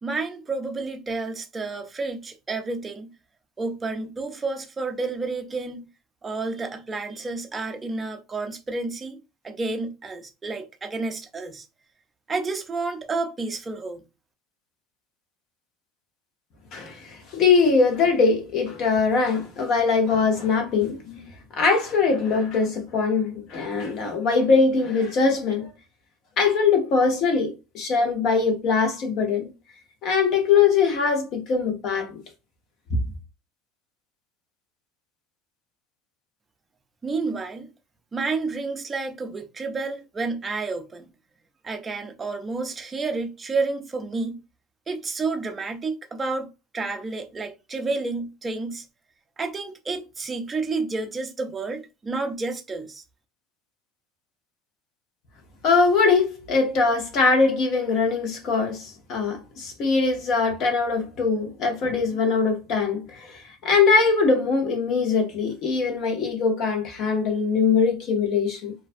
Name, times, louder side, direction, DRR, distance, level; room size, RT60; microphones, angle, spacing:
voice 1, 0.0-3.1 3.6-5.9 6.2-11.7 12.3-14.0 37.0-37.7 38.1-41.1 41.6-44.4 44.9-48.8 49.4-53.0, right 3 dB, 20° right, 0.4 m, -30 dB
voice 2, 16.7-21.3 21.5-25.7 26.4-29.5 30.0-32.2 55.6-68.7, left 4 dB, 50° left, 0.8 m, -22 dB
2.4 x 2.1 x 2.5 m
supercardioid pair, 130°, 0 cm